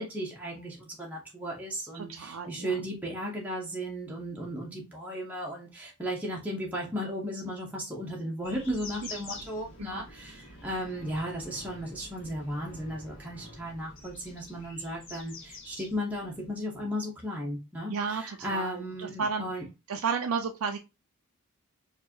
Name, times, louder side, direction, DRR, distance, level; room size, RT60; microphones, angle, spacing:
voice 1, 0.0-19.7, equal, 5° right, 0.7 m, -35 dB
voice 2, 1.9-2.8 9.9-10.0 17.9-19.4 19.9-20.8, right 5 dB, 80° right, 0.4 m, -32 dB
sound 1, 8.4-16.9, left 2 dB, 55° left, 1.2 m, -48 dB
sound 2, 10.8-12.2 12.5-14.0, left 1 dB, 10° left, 1.4 m, -52 dB
4.5 x 2.5 x 2.7 m
head